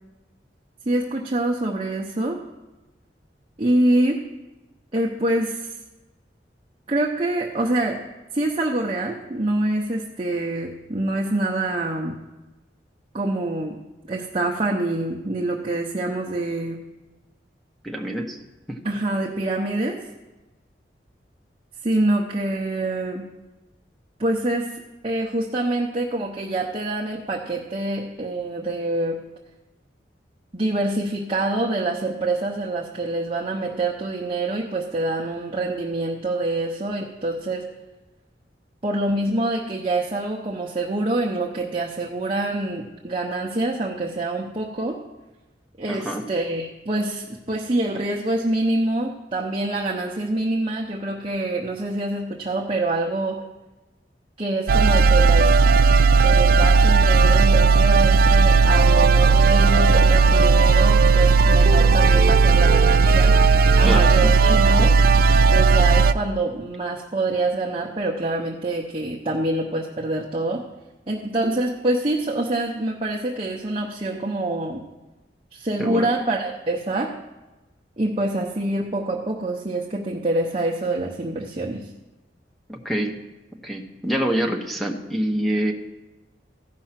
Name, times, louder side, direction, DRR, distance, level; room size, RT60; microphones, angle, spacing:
voice 1, 0.9-2.4 3.6-4.2 4.9-5.7 6.9-8.0 8.3-12.1 13.1-13.8 14.1-16.8 18.8-20.0 21.8-23.3 24.2-24.7 25.0-29.2 30.5-37.6 38.8-45.0 45.8-53.4 54.4-55.5 56.2-63.4 63.7-64.9 65.5-70.6 71.1-74.8 75.5-77.1 78.0-81.9, right 2 dB, 30° right, -2 dB, 0.8 m, -25 dB
voice 2, 17.8-18.4 18.7-18.8 45.9-46.2 63.8-64.3 75.8-76.1 82.7-83.1 83.6-85.7, equal, ahead, 2 dB, 0.9 m, -26 dB
sound 1, 54.7-66.1, right 4 dB, 55° right, 0.4 m, -15 dB
14.5 x 5.5 x 5.8 m, 1.1 s
head